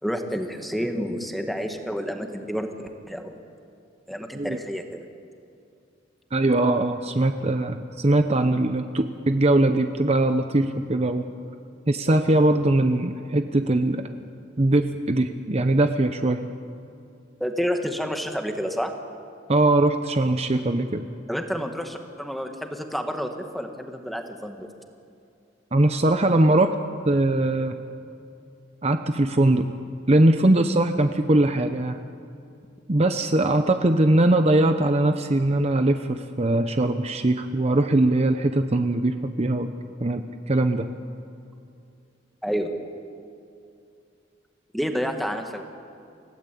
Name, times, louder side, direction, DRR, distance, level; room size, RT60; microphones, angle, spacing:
voice 1, 0.0-3.4 4.1-5.1 17.4-18.9 21.3-24.7 42.4-42.7 44.7-45.6, equal, ahead, 4 dB, 1.7 m, -29 dB
voice 2, 6.3-11.3 11.9-14.1 14.6-16.4 19.5-21.0 25.7-26.7 27.1-27.8 28.8-29.7 30.1-32.0 32.9-39.7 40.0-40.9, right 2 dB, 35° right, 8 dB, 0.8 m, -21 dB
29.0 x 16.0 x 8.5 m, 2.5 s
head